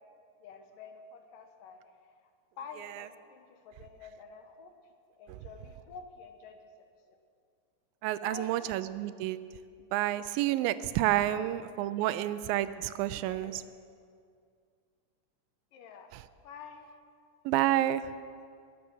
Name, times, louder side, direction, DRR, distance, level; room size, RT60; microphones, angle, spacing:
voice 1, 0.4-2.2 2.6-4.7 5.1-7.2 8.2-8.7 11.2-11.5 12.2-12.4 13.2-13.6 15.7-16.1 16.4-16.9, left 5 dB, 75° left, 5 dB, 2.6 m, -49 dB
voice 2, 8.0-9.4 9.9-13.6 17.5-18.0, right 14 dB, 85° right, 14 dB, 2.3 m, -29 dB
20.0 x 8.2 x 6.3 m, 2.2 s
omnidirectional pair, 4.0 m